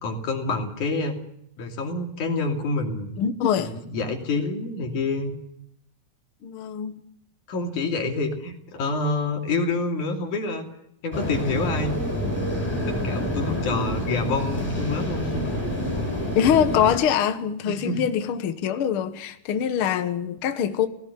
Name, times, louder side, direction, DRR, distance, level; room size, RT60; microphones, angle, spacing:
voice 1, 0.0-1.2 1.6-3.1 3.6-5.4 7.5-10.7 11.0-12.1 12.9-15.4 17.7-18.0, left 3 dB, 55° left, 4.1 m, -27 dB
voice 2, 3.2-3.7 6.4-7.0 16.3-20.9, left 8 dB, 85° left, 1.2 m, -23 dB
sound 1, 11.1-17.0, left 1 dB, 5° left, 7.7 m, -28 dB
18.0 x 17.0 x 9.6 m
omnidirectional pair, 4.4 m